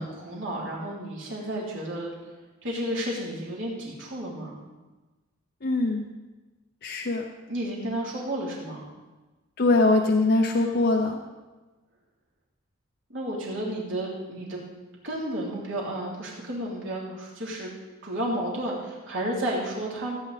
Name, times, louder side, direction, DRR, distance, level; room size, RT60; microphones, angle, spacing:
voice 1, 0.0-2.1 2.6-4.6 7.5-8.9 13.1-14.6 15.0-17.7 18.0-20.2, right 1 dB, 65° right, -4 dB, 3.3 m, -32 dB
voice 2, 5.6-6.0 6.8-7.3 9.6-11.2, left 2 dB, 50° left, 1 dB, 0.7 m, -22 dB
15.5 x 8.5 x 4.2 m, 1.2 s
head